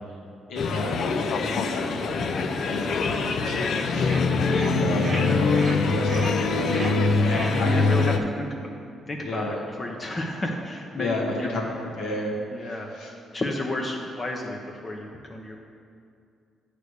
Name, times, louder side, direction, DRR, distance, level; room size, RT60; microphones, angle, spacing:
voice 1, 0.5-2.0 2.6-4.1 4.7-6.8 7.2-7.7 9.2-9.6 11.0-11.6 11.9-12.3 12.6-13.1, left 2 dB, 85° left, -3 dB, 1.3 m, -32 dB
sound 1, 0.6-8.2, left 4 dB, 65° left, 0.4 m, -24 dB
sound 2, 1.7-7.7, right 2 dB, 25° right, 0.8 m, -37 dB
voice 2, 7.5-11.5 12.5-12.9 13.3-15.6, left 1 dB, 30° left, 0 dB, 0.7 m, -31 dB
8.0 x 3.4 x 6.5 m, 2.4 s
cardioid pair, 90°, 0 cm